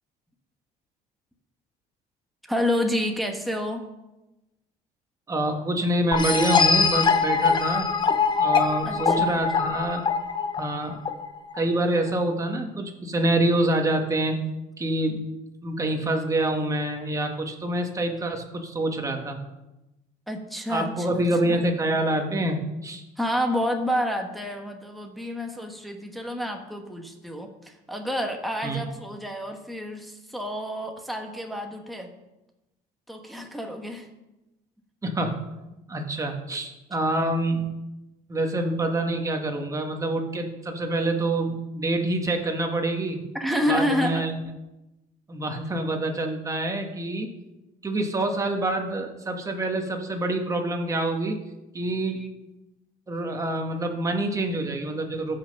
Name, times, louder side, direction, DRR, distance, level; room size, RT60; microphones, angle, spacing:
voice 1, 2.5-3.8 8.8-9.4 20.3-21.6 23.2-32.1 33.1-34.1 43.3-44.2 52.2-52.3, equal, ahead, 2 dB, 1.3 m, -29 dB
voice 2, 5.3-7.9 8.4-10.0 10.6-11.0 11.5-14.4 14.8-15.3 15.6-19.4 20.7-23.0 28.6-28.8 35.0-35.5 35.9-37.8 38.3-43.2 43.6-44.4 45.3-47.3 47.8-51.4 51.7-52.2 53.1-55.4, right 1 dB, 20° right, 3 dB, 1.6 m, -26 dB
sound 1, 6.1-11.6, left 5 dB, 25° left, 0.8 m, -23 dB
14.5 x 5.8 x 5.4 m, 0.98 s
cardioid pair, 130°, 17 cm